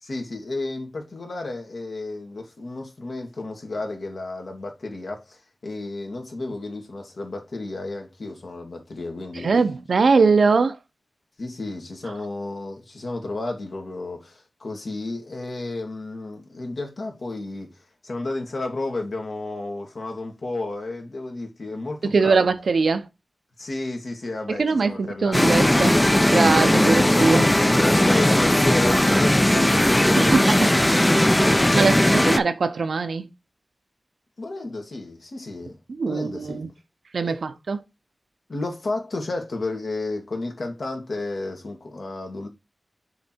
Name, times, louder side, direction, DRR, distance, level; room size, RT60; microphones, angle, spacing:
voice 1, 0.0-9.5 11.4-17.7 18.0-22.5 23.6-25.4 28.1-30.7 31.0-32.4 34.4-35.8 36.0-36.6 37.2-37.4 38.5-42.5, left 2 dB, 70° left, 1.8 m, -32 dB
voice 2, 9.4-10.8 22.0-23.1 24.5-26.0 26.3-27.5 30.2-30.5 31.5-33.3 35.9-36.7 37.1-37.8, right 4 dB, 90° right, 0.7 m, -21 dB
sound 1, 25.3-32.4, left 1 dB, 15° left, 0.4 m, -18 dB
6.6 x 3.3 x 4.4 m
wide cardioid pair, 80°, 0 cm